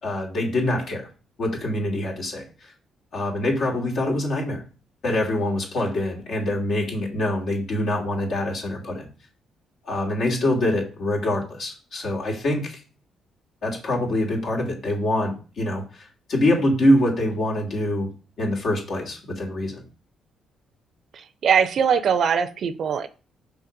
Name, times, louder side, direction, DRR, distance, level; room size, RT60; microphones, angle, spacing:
voice 1, 0.0-1.1 1.4-2.4 3.1-4.6 5.0-9.1 9.9-12.8 13.6-18.1 18.4-19.8, left 1 dB, 65° left, 2.4 m, -24 dB
voice 2, 21.4-23.1, right 7 dB, 60° right, 0.6 m, -21 dB
5.6 x 3.8 x 5.2 m
cardioid pair, 90°, 0 cm